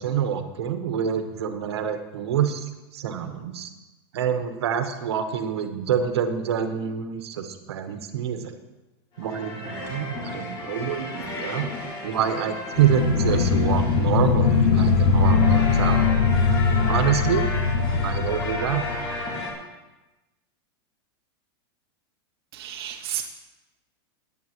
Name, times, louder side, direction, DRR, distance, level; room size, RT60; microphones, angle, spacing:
voice 1, 0.0-2.7 2.9-3.7 4.1-8.5 9.2-11.7 12.0-16.1 16.9-17.5 17.9-18.9, right 8 dB, 90° right, 7 dB, 1.3 m, -26 dB
sound 1, 9.2-19.5, left 3 dB, 35° left, 3.1 m, -33 dB
sound 2, 12.8-19.2, left 5 dB, 85° left, 1.8 m, -21 dB
voice 2, 22.5-23.3, right 10 dB, 75° right, 2 dB, 0.8 m, -32 dB
18.5 x 9.2 x 3.1 m, 1.1 s
supercardioid pair, 155°, 13 cm